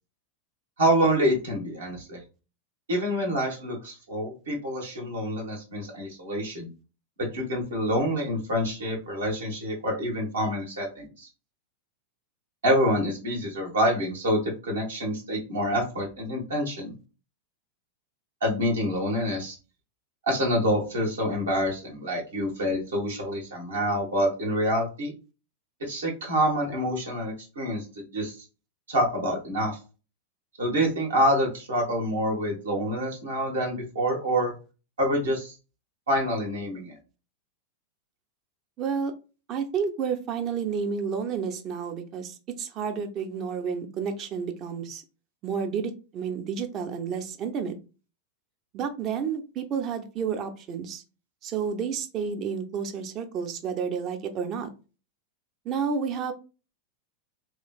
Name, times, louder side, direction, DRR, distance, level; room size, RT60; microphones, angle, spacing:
voice 1, 0.8-2.2 2.9-6.7 7.3-11.3 12.6-16.9 18.4-19.6 20.3-25.1 25.8-27.8 28.1-28.4 28.9-29.8 30.6-34.5 35.0-35.5 36.1-36.9, equal, 70° right, -1 dB, 1.3 m, -27 dB
voice 2, 38.8-39.1 39.5-45.0 45.4-47.7 48.7-51.0 51.4-54.7 55.6-56.3, right 6 dB, 35° right, 6 dB, 0.6 m, -30 dB
3.1 x 2.9 x 2.3 m, 0.32 s
figure-of-eight pair, 90°, 0 cm